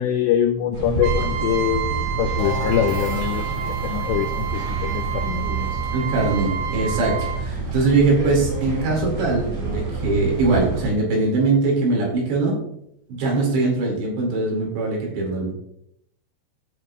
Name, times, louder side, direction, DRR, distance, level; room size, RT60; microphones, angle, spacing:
voice 1, 0.0-5.8, left 9 dB, 90° left, 7 dB, 2.5 m, -24 dB
sound 1, 0.7-10.9, right 3 dB, 40° right, 3.3 m, -28 dB
Trumpet, 1.0-7.4, right 9 dB, 85° right, 3.4 m, -30 dB
sound 2, 2.4-8.0, left 1 dB, 55° left, 2.6 m, -37 dB
voice 2, 5.9-12.6 13.1-15.5, right 3 dB, 65° right, -2 dB, 4.4 m, -22 dB
15.5 x 6.7 x 2.5 m, 0.75 s
omnidirectional pair, 5.7 m